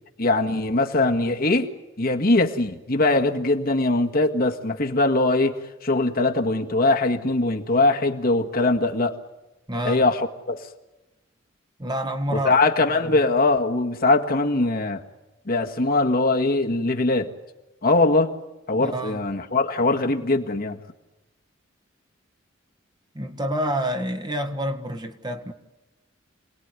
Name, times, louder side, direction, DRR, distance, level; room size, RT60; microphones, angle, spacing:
voice 1, 0.2-1.7 2.0-9.1 9.8-10.2 10.5-10.6 12.3-15.0 15.5-17.3 17.8-18.3 18.7-20.8, left 2 dB, 50° left, 3 dB, 1.8 m, -21 dB
voice 2, 9.7-10.1 11.8-12.6 12.9-13.2 18.8-19.3 23.1-25.5, equal, 20° right, 7 dB, 1.6 m, -28 dB
28.0 x 19.5 x 9.7 m, 1.0 s
head